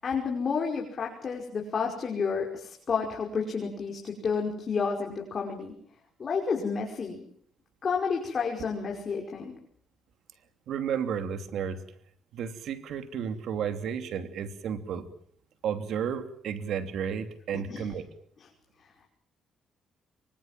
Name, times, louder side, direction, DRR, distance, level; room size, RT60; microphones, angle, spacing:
voice 1, 0.0-5.7 6.2-7.2 7.8-9.5 17.5-17.9 18.4-18.5, left 5 dB, 45° left, 0 dB, 5.5 m, -30 dB
voice 2, 10.7-11.8 12.3-15.1 15.6-18.1, right 7 dB, 75° right, 9 dB, 2.9 m, -32 dB
25.5 x 23.5 x 7.6 m, 0.63 s
cardioid pair, 90°, 0 cm